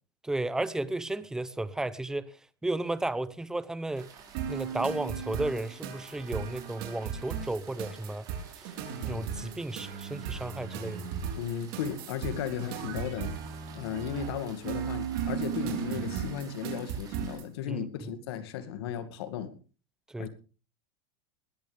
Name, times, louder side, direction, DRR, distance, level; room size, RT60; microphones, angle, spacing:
voice 1, 0.2-2.3 2.6-4.1 4.5-8.3 9.0-11.1 17.7-17.9 20.1-20.3, right 2 dB, 5° right, 0.7 m, -33 dB
sound 1, 3.9-17.4, right 6 dB, 30° right, 5.2 m, -53 dB
sound 2, 4.3-17.5, right 7 dB, 65° right, 4.1 m, -36 dB
voice 2, 11.4-13.4 13.7-19.5 20.2-20.3, left 9 dB, 75° left, 2.2 m, -35 dB
20.0 x 13.5 x 3.5 m
supercardioid pair, 155°, 13 cm